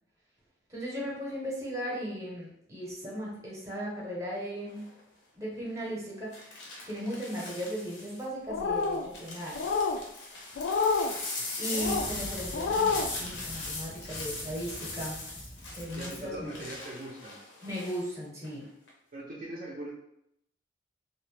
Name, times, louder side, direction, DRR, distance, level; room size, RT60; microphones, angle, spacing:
voice 1, 0.7-4.8 5.3-6.6 6.8-9.6 11.6-15.2 15.7-16.5 17.6-18.7, equal, 15° right, -5 dB, 0.8 m, -37 dB
sound 1, 4.7-5.0 6.3-8.2 8.8-18.1 18.4-18.9, left 2 dB, 90° left, 0.7 m, -40 dB
sound 2, 8.5-9.0 9.5-10.0 10.6-11.1 11.7-12.1 12.5-13.1, left 4 dB, 75° left, 0.3 m, -28 dB
sound 3, 11.8-16.8, equal, 20° left, 0.6 m, -46 dB
voice 2, 16.0-17.4 19.1-19.9, right 1 dB, 45° right, -4 dB, 0.5 m, -41 dB
2.6 x 2.1 x 3.1 m, 0.79 s
head